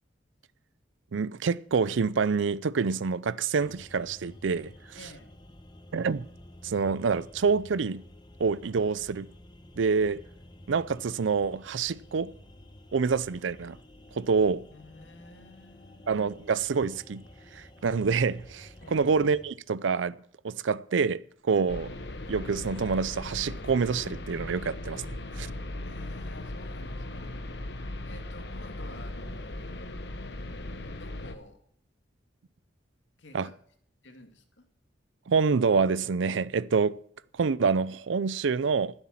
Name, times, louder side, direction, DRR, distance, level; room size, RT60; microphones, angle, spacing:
voice 1, 1.1-4.7 5.9-6.3 6.6-8.0 8.4-9.3 9.8-10.2 10.7-12.3 12.9-13.8 14.2-14.6 16.1-17.2 17.5-20.1 20.4-21.9 22.3-25.0 25.3-25.5 33.3-33.5 35.3-37.0 37.4-38.9, right 5 dB, 85° right, 0.5 m, -27 dB
sound 1, 3.6-19.5, left 1 dB, 25° left, 1.0 m, -51 dB
voice 2, 5.0-5.3 14.7-16.2 18.8-19.1 25.7-27.4 28.0-29.8 30.8-31.6 33.2-33.5 34.0-34.7, left 2 dB, 75° left, 2.1 m, -51 dB
sound 2, 21.7-31.3, left 1 dB, 60° left, 1.1 m, -38 dB
14.5 x 8.0 x 7.3 m
head